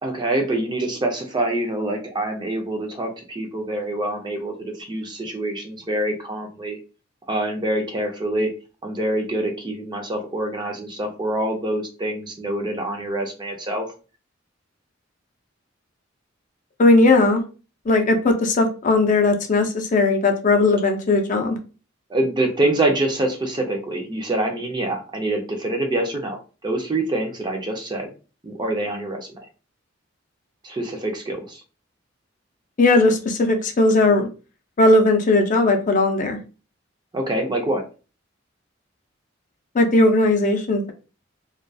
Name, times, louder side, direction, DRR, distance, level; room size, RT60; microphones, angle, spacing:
voice 1, 0.0-6.8 7.3-8.5 8.8-13.9 22.1-28.1 28.4-29.3 30.6-31.6 37.1-37.8, right 1 dB, 25° right, 3 dB, 0.5 m, -25 dB
voice 2, 16.8-17.4 17.9-21.6 32.8-34.3 34.8-36.4 39.7-40.9, left 2 dB, 40° left, 5 dB, 0.4 m, -17 dB
2.3 x 2.2 x 2.6 m, 0.34 s
head